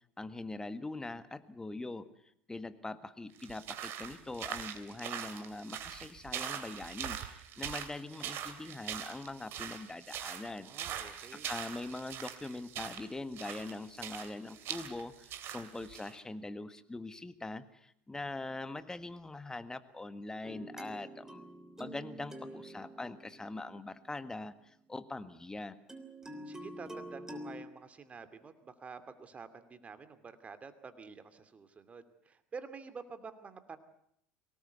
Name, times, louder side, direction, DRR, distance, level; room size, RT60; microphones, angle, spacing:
voice 1, 0.2-2.1 2.5-10.7 11.3-21.4 21.8-25.8, left 2 dB, 10° left, 12 dB, 1.6 m, -42 dB
sound 1, 3.4-16.2, right 10 dB, 50° right, 2.7 m, -42 dB
voice 2, 10.6-11.5 22.4-22.9 26.2-33.8, right 5 dB, 25° right, 10 dB, 2.5 m, -49 dB
sound 2, 20.4-24.7 25.9-27.6, right 1 dB, 10° right, 3.4 m, -47 dB
23.5 x 19.0 x 8.2 m, 0.72 s
hypercardioid pair, 70°, 5 cm